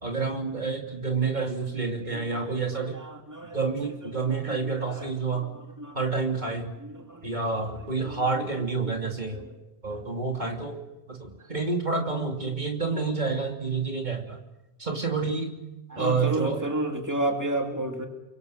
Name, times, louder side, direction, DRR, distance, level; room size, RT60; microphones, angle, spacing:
voice 1, 0.0-3.0 3.4-5.5 5.9-6.7 7.2-9.5 9.8-10.8 11.1-14.4 14.8-15.6 16.0-16.6, right 4 dB, 45° right, 2 dB, 3.1 m, -29 dB
voice 2, 2.1-2.6 3.3-3.6 4.5-4.6 5.8-6.0 7.1-7.2 8.0-8.2 15.9-18.1, right 2 dB, 15° right, 3 dB, 2.6 m, -30 dB
30.0 x 24.0 x 6.8 m, 1.0 s
omnidirectional pair, 1.1 m